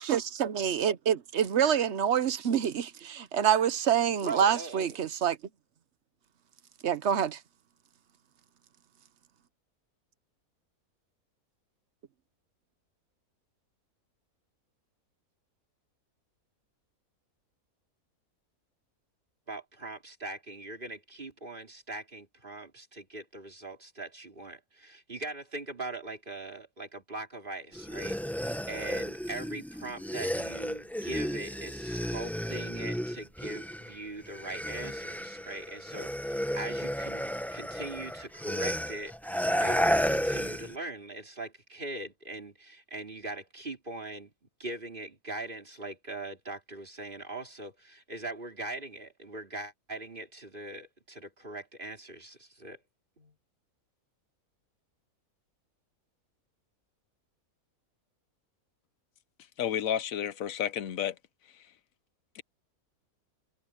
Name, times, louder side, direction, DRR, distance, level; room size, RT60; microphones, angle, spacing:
voice 1, 0.0-5.4 6.8-7.4, right 8 dB, 55° right, 1.0 m, -27 dB
voice 2, 4.2-4.9 19.5-44.3 44.6-52.8 53.2-53.3, right 2 dB, 35° right, 4.4 m, -41 dB
sound 1, 27.7-34.0 34.2-40.8, equal, ahead, 0.9 m, -33 dB
voice 3, 59.6-61.1 62.4-62.5, left 9 dB, 65° left, 1.1 m, -31 dB
omnidirectional pair, 1.6 m